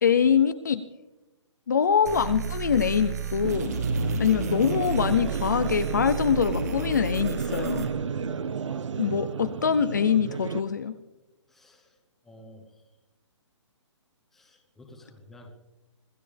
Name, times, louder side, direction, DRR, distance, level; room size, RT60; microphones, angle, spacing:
voice 1, 0.0-0.8 1.7-3.7 4.2-7.9 9.0-11.0, left 7 dB, 35° left, 10 dB, 0.6 m, -24 dB
sound 1, 2.1-7.9, right 4 dB, 30° right, 1.7 m, -33 dB
sound 2, 3.4-10.6, right 6 dB, 75° right, 0.8 m, -32 dB
voice 2, 11.5-11.9 12.2-12.7 14.3-15.5, left 1 dB, ahead, 0 dB, 1.0 m, -51 dB
26.0 x 14.5 x 3.4 m, 1.0 s
hypercardioid pair, 180°, 16 cm